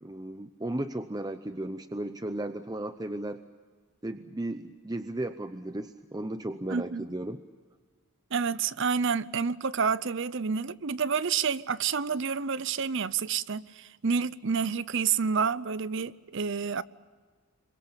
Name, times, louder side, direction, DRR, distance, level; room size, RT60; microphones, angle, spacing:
voice 1, 0.0-3.4 4.0-7.4, right 1 dB, 15° right, 0.7 m, -35 dB
voice 2, 6.7-7.0 8.3-16.8, right 6 dB, 55° right, 0.6 m, -29 dB
27.0 x 23.0 x 7.0 m
head